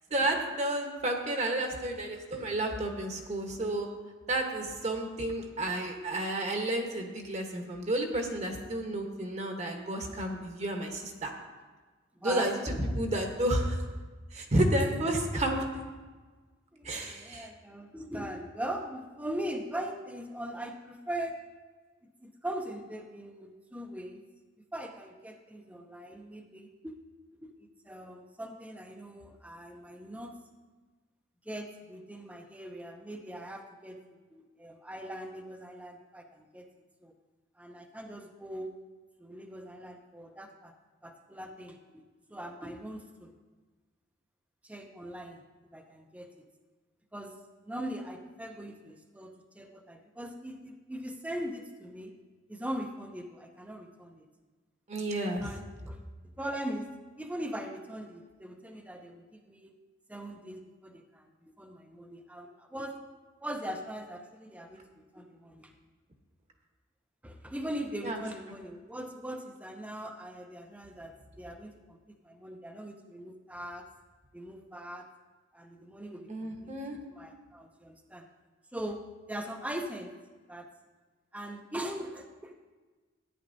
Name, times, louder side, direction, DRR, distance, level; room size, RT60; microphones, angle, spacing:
voice 1, 0.1-3.9 4.3-11.3 12.2-13.8 14.3-15.6 16.8-17.5 54.9-55.5 68.0-68.2 76.3-77.0, right 1 dB, 35° right, 3 dB, 1.1 m, -31 dB
voice 2, 12.2-12.8 16.7-21.4 22.2-24.2 24.6-26.9 27.3-27.5 27.8-30.4 31.4-36.7 37.0-37.1 37.6-38.7 39.2-40.7 41.0-43.3 44.6-45.4 45.7-46.5 47.1-52.1 52.5-54.3 55.4-56.0 56.4-56.9 57.2-59.7 60.1-63.0 63.4-65.7 67.2-73.9 74.3-75.1 75.5-76.7 77.1-78.3 78.7-80.1 80.5-80.7 81.3-82.5, right 1 dB, 5° right, 3 dB, 0.6 m, -41 dB
13.5 x 9.6 x 2.7 m, 1.3 s
head